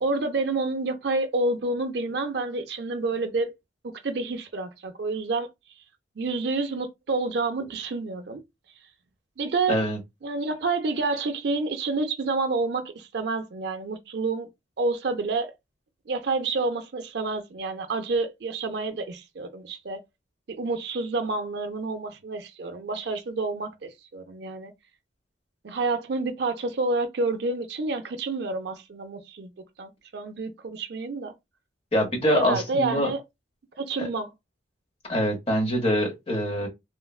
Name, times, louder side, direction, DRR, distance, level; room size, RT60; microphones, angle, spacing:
voice 1, 0.0-3.5 3.8-5.5 6.2-8.4 9.4-9.8 10.2-14.5 14.8-15.5 16.1-20.0 20.5-24.7 25.6-29.5 29.8-31.3 32.3-33.2 33.8-34.3, right 3 dB, 60° right, 0.4 m, -29 dB
voice 2, 9.7-10.0 31.9-33.1 34.0-34.1 35.1-36.7, equal, 30° left, 0.9 m, -24 dB
3.1 x 2.2 x 2.3 m
head